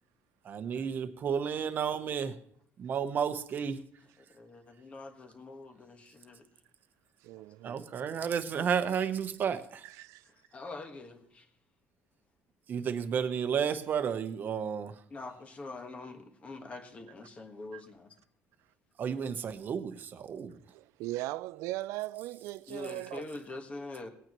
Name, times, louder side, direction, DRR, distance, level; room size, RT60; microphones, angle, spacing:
voice 1, 0.4-2.4 2.8-3.8 7.6-9.8 12.7-15.0 19.0-20.6, right 7 dB, 40° right, 0.9 m, -32 dB
voice 2, 4.2-6.4 10.2-11.5 15.1-18.2 22.7-24.1, left 2 dB, 25° left, 1.4 m, -44 dB
voice 3, 7.2-7.9 9.8-10.2 17.7-17.8 20.7-23.3, right 17 dB, 75° right, 0.4 m, -39 dB
19.5 x 8.9 x 3.0 m
cardioid pair, 145°, 5 cm